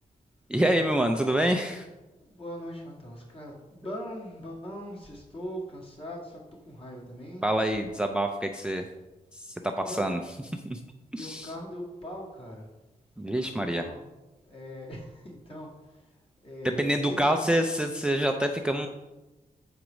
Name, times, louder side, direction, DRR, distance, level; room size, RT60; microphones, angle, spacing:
voice 1, 0.5-1.9 7.4-8.9 9.3-10.2 10.5-10.8 11.1-11.5 13.2-13.9 16.6-18.9, right 1 dB, 5° right, 5 dB, 0.3 m, -26 dB
voice 2, 2.3-6.4 6.7-7.5 9.8-10.1 11.1-12.7 13.2-14.0 14.4-15.7 16.4-17.6, equal, 40° left, -2 dB, 1.8 m, -40 dB
7.1 x 4.6 x 5.0 m, 1.1 s
wide cardioid pair, 145°, 15 cm